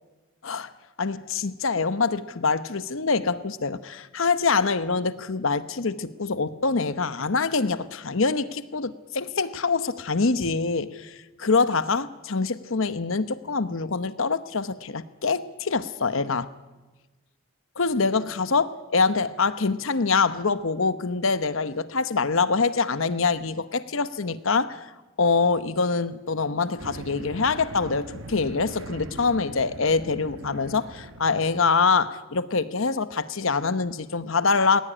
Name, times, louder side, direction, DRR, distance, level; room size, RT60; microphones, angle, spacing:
voice 1, 1.0-16.5 17.8-24.8 25.2-34.8, left 4 dB, 70° left, 14 dB, 0.9 m, -25 dB
sound 1, 26.8-31.8, right 2 dB, 60° right, 1.5 m, -41 dB
20.5 x 18.5 x 10.0 m, 1.2 s
head